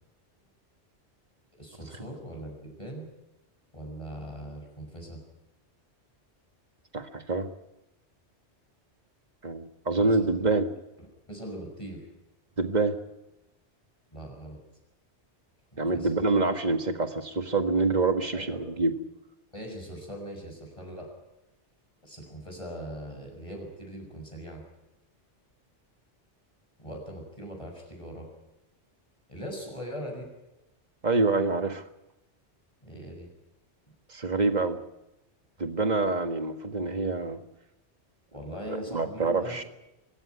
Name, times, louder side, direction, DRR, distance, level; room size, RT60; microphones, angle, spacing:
voice 1, 1.6-3.1 3.7-5.2 10.0-10.2 11.0-12.1 14.1-14.6 15.9-16.1 18.3-18.8 19.5-21.1 22.0-24.6 26.8-28.3 29.3-30.3 32.8-33.3 38.3-39.7, equal, 25° left, 1 dB, 6.7 m, -40 dB
voice 2, 6.9-7.5 9.4-10.7 12.6-13.0 15.8-18.9 31.0-31.8 34.1-34.8 35.6-37.4 38.7-39.6, right 3 dB, 40° right, 8 dB, 1.7 m, -26 dB
24.5 x 14.5 x 9.7 m, 0.94 s
omnidirectional pair, 1.2 m